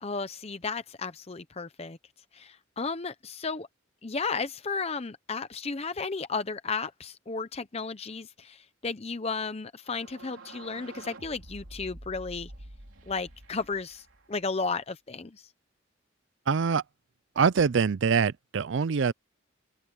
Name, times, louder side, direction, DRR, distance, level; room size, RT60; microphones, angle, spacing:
voice 1, 0.0-2.0 2.3-3.7 4.0-12.5 13.1-15.4, left 4 dB, 30° left, 0.7 m, -34 dB
sound 1, 9.8-14.7, right 1 dB, 90° right, 3.5 m, -48 dB
voice 2, 16.5-16.8 17.4-19.1, right 6 dB, 65° right, 0.5 m, -24 dB
open air
head